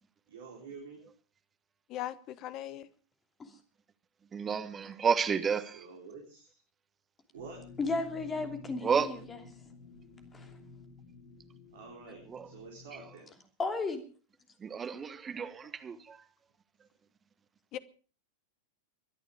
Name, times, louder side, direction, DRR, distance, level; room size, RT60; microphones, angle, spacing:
voice 1, 0.3-1.1 5.7-6.6 7.3-7.6 11.7-13.3, right 4 dB, 60° right, 4.0 m, -48 dB
voice 2, 1.9-2.9 17.7-17.8, left 13 dB, 35° left, 1.0 m, -39 dB
voice 3, 4.3-5.8 8.8-9.1 12.3-12.5 14.6-16.2, right 6 dB, 20° right, 1.3 m, -31 dB
sound 1, 7.3-13.1, left 3 dB, 65° left, 3.1 m, -52 dB
voice 4, 7.8-9.4 10.3-10.5 13.6-14.0, left 3 dB, 20° left, 2.9 m, -34 dB
22.5 x 11.0 x 4.9 m
figure-of-eight pair, 90°, 0 cm